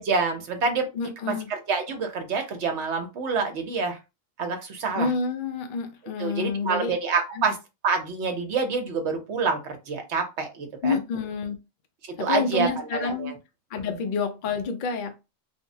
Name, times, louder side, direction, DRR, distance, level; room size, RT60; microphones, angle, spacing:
voice 1, 0.0-0.9 1.3-4.0 4.4-5.1 6.2-7.6 7.8-11.0 12.2-13.3 13.9-14.0, right 4 dB, 60° right, 1.0 m, -27 dB
voice 2, 0.9-1.5 5.0-6.9 7.4-7.5 10.8-11.6 12.2-13.4 13.7-15.1, left 5 dB, 55° left, 0.6 m, -28 dB
3.4 x 2.1 x 2.6 m
omnidirectional pair, 1.4 m